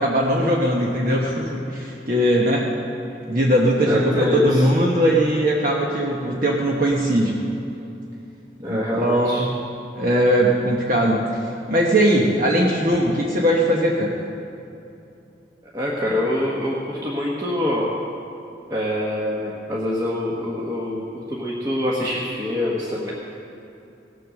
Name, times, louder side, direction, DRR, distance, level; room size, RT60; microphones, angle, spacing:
voice 1, 0.0-2.7 3.3-7.4 8.7-9.5 10.0-11.3 11.7-14.1, right 1 dB, 50° right, -3 dB, 1.2 m, -20 dB
voice 2, 3.8-4.6 8.6-9.4 15.7-17.9 18.7-23.1, left 1 dB, 20° right, -5 dB, 1.3 m, -25 dB
18.0 x 7.8 x 6.4 m, 2.8 s
head